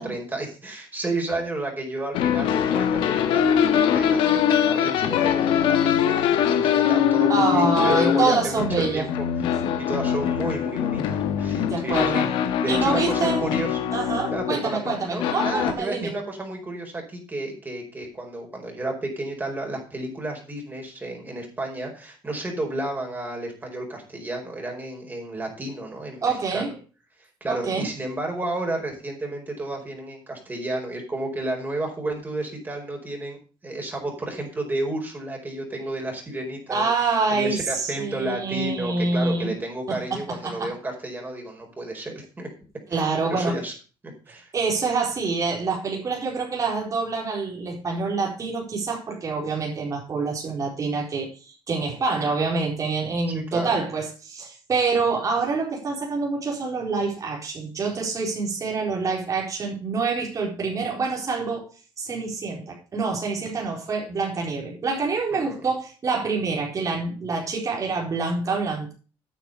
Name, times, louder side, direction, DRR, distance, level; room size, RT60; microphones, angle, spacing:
voice 1, 0.0-4.4 4.7-8.6 8.9-9.3 9.9-12.2 12.6-13.8 14.3-26.8 27.4-33.4 33.6-36.9 37.3-42.5 42.9-43.7 44.0-44.5 52.2-52.3 53.3-53.7 65.4-65.7, right 2 dB, 20° right, 4.8 m, -32 dB
sound 1, 2.1-15.7, left 9 dB, 80° left, 1.4 m, -23 dB
voice 2, 7.3-9.1 11.6-12.2 12.7-13.5 13.9-16.1 26.2-26.7 27.5-27.9 36.7-39.6 39.9-40.7 42.9-43.6 44.5-61.6 62.0-68.9, right 4 dB, 40° right, 4.2 m, -26 dB
9.7 x 6.9 x 6.6 m
cardioid pair, 90°, 9 cm